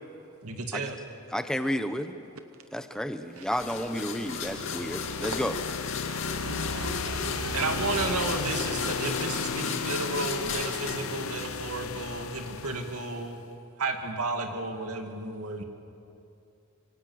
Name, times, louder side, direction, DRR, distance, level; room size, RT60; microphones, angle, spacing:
voice 1, 0.4-1.0 7.5-13.4 13.8-15.6, right 3 dB, 90° right, 4 dB, 2.4 m, -32 dB
voice 2, 1.3-2.1 2.7-5.6, equal, 5° left, 8 dB, 1.0 m, -31 dB
sound 1, 3.5-13.3, left 6 dB, 70° left, 0.7 m, -35 dB
sound 2, 3.6-12.1, left 5 dB, 55° left, 2.8 m, -36 dB
voice 3, 6.0-8.1, right 4 dB, 70° right, 9 dB, 0.8 m, -39 dB
26.5 x 25.0 x 8.0 m, 2.6 s
head